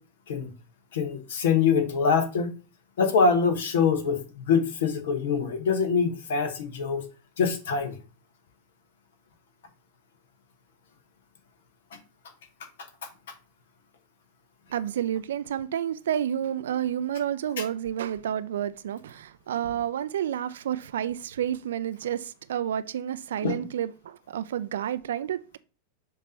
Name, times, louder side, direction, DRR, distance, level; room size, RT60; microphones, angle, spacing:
voice 1, 0.9-2.5 3.0-7.0 7.4-8.0 23.4-23.5, left 5 dB, 60° left, 1.2 m, -24 dB
voice 2, 14.7-25.6, right 10 dB, 60° right, 0.4 m, -30 dB
7.0 x 3.0 x 5.6 m
figure-of-eight pair, 90°, 0 cm